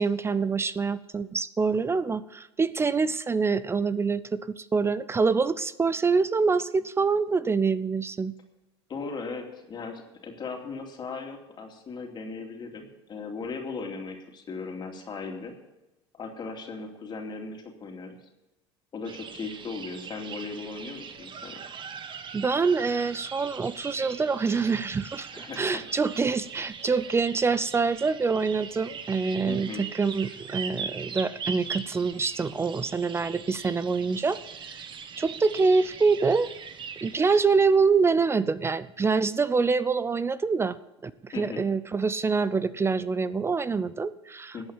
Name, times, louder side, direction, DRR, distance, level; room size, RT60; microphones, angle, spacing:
voice 1, 0.0-8.3 22.3-34.8 35.2-36.5 37.0-40.8 41.0-44.7, right 4 dB, 20° right, 17 dB, 0.6 m, -25 dB
voice 2, 8.9-15.5 16.1-18.2 18.9-21.6 25.3-25.8 29.5-29.8 41.3-41.6 44.5-44.7, left 4 dB, 35° left, 3 dB, 2.7 m, -37 dB
sound 1, 19.0-37.4, right 6 dB, 35° right, 1.3 m, -41 dB
14.5 x 8.4 x 7.3 m, 0.98 s
hypercardioid pair, 85°, 14 cm